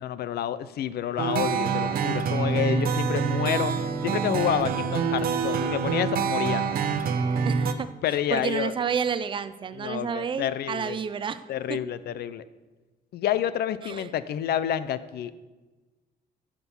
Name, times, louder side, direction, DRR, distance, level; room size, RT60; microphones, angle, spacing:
voice 1, 0.0-3.7 4.0-6.7 8.0-8.7 9.8-11.0 11.5-12.4 13.1-15.3, left 10 dB, 70° left, 15 dB, 0.6 m, -29 dB
sound 1, 1.2-7.7, right 6 dB, 60° right, 0.9 m, -26 dB
voice 2, 7.4-7.9 8.3-11.8 13.8-14.1, right 7 dB, 30° right, 13 dB, 0.5 m, -30 dB
14.0 x 6.1 x 7.1 m, 1.2 s
cardioid pair, 170°, 17 cm